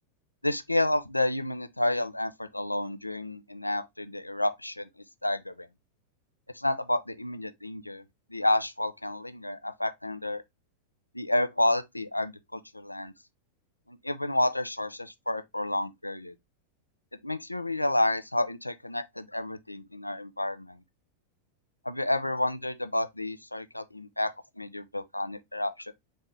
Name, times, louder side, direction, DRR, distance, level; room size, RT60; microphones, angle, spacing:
voice 1, 0.4-4.9 5.2-5.7 6.5-8.0 8.3-10.4 11.1-13.1 13.9-16.3 17.2-20.8 21.9-25.9, left 1 dB, 85° left, 0.4 m, -30 dB
4.2 x 3.3 x 3.1 m
figure-of-eight pair, 90°, 0 cm